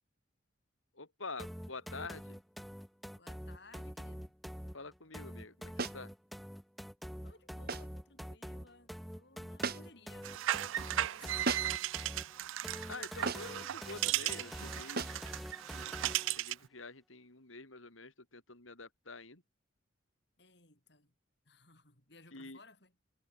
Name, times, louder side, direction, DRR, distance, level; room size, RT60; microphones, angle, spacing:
voice 1, 1.0-2.4 4.7-6.1 12.9-15.2 16.3-19.4 22.3-22.6, left 3 dB, 90° left, 4.1 m, -47 dB
sound 1, 1.4-16.4, equal, ahead, 0.6 m, -46 dB
voice 2, 3.2-4.3 7.2-10.5 10.9-11.8 20.4-21.1 21.5-23.0, left 3 dB, 55° left, 7.0 m, -60 dB
sound 2, 5.8-6.1 7.7-8.0 9.6-10.1 11.4-11.9 13.3-13.6 15.0-15.3, right 4 dB, 50° right, 1.8 m, -37 dB
sound 3, 10.2-16.7, right 14 dB, 80° right, 0.3 m, -36 dB
head